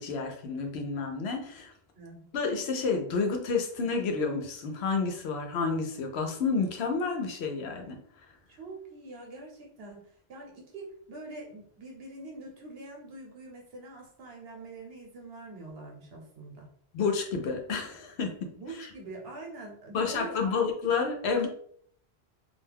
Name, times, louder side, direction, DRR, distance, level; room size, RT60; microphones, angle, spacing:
voice 1, 0.0-1.7 2.3-8.0 16.9-18.5 19.9-21.5, left 4 dB, 80° left, 4 dB, 0.8 m, -30 dB
voice 2, 1.9-2.3 8.5-16.7 18.5-20.6, right 2 dB, 70° right, 0 dB, 1.0 m, -44 dB
2.4 x 2.2 x 3.3 m, 0.62 s
omnidirectional pair, 1.1 m